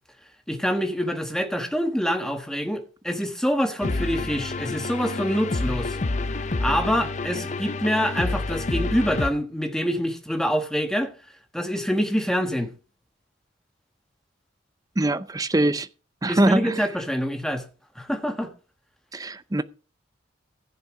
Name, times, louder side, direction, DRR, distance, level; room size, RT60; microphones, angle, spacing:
voice 1, 0.5-6.0 6.6-11.1 11.5-12.7 16.3-17.6 17.9-18.5, equal, 5° left, 1.3 m, -26 dB
sound 1, 3.8-9.3, left 3 dB, 35° left, 0.6 m, -28 dB
voice 2, 15.0-15.9 16.2-16.8 19.1-19.6, right 1 dB, 20° right, 0.5 m, -22 dB
15.0 x 6.8 x 4.7 m
head